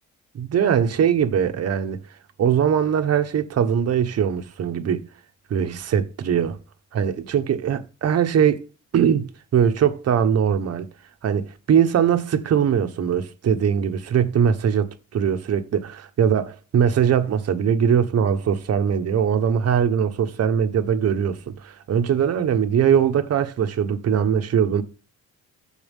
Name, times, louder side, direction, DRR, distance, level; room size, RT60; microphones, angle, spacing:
voice 1, 0.3-2.0 2.4-5.0 5.5-6.6 6.9-8.7 8.9-10.9 11.2-24.8, right 8 dB, 55° right, 1.2 m, -21 dB
14.0 x 4.6 x 3.6 m
cardioid pair, 140°, 31 cm